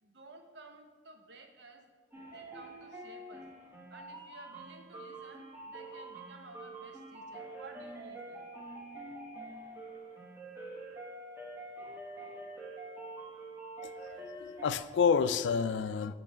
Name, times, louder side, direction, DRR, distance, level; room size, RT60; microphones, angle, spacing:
voice 1, 0.0-3.5 3.9-8.5, right 2 dB, 65° right, 4 dB, 0.8 m, -54 dB
sound 1, 2.1-14.8, right 2 dB, 15° right, 1.1 m, -46 dB
voice 2, 13.8-16.1, left 6 dB, 70° left, 12 dB, 0.3 m, -30 dB
8.2 x 3.2 x 5.1 m, 1.4 s
head